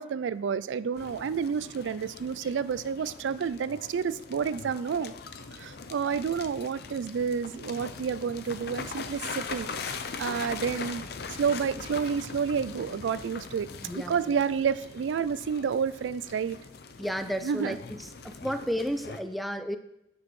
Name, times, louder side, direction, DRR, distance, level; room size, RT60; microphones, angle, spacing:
voice 1, 0.0-5.1 5.5-11.0 11.4-13.7 13.9-16.6 17.4-17.8, right 6 dB, 85° right, 16 dB, 0.3 m, -30 dB
sound 1, 1.0-19.2, left 4 dB, 60° left, 0.5 m, -41 dB
voice 2, 13.8-14.2 17.0-17.8 18.2-19.8, equal, ahead, 9 dB, 0.4 m, -32 dB
9.4 x 6.1 x 3.1 m, 0.83 s
head